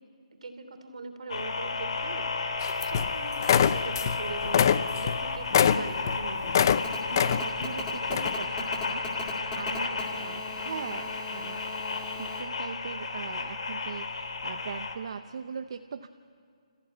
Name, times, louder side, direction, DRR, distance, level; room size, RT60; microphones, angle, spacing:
voice 1, 0.4-6.7, right 3 dB, 70° right, 6 dB, 3.0 m, -41 dB
sound 1, 1.3-14.9, left 4 dB, 65° left, 2.4 m, -33 dB
sound 2, 2.6-3.1 3.4-4.2 4.4-6.8 7.1-7.7 8.1-8.3, left 8 dB, 35° left, 0.5 m, -24 dB
Telephone, 6.7-12.4, left 3 dB, 10° left, 2.2 m, -40 dB
voice 2, 7.1-11.6 12.2-16.1, right 6 dB, 50° right, 8 dB, 0.7 m, -40 dB
27.5 x 15.0 x 9.0 m, 2.3 s
hypercardioid pair, 170°, 4 cm